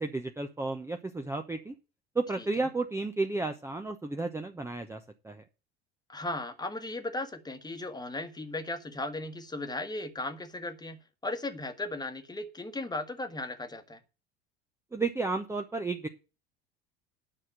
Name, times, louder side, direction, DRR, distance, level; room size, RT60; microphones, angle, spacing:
voice 1, 0.0-1.7 2.1-5.4 14.9-16.1, right 3 dB, 10° right, 5 dB, 0.8 m, -32 dB
voice 2, 6.1-14.0, left 2 dB, 10° left, 8 dB, 1.5 m, -36 dB
10.0 x 5.9 x 7.6 m, 0.31 s
figure-of-eight pair, 70°, 32 cm